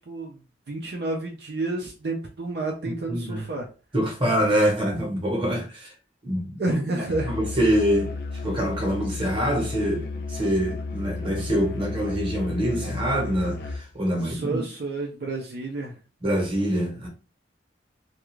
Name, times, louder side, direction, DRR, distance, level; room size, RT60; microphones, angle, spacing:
voice 1, 0.1-0.4 0.7-3.7 6.6-7.3 14.2-15.9, right 2 dB, 60° right, 0.5 m, -30 dB
voice 2, 3.1-3.4 3.9-5.9 6.2-6.6 6.9-14.6 16.2-17.1, equal, 30° right, 0.9 m, -25 dB
Musical instrument, 7.0-13.9, left 3 dB, 55° left, 0.4 m, -33 dB
2.4 x 2.3 x 3.0 m
head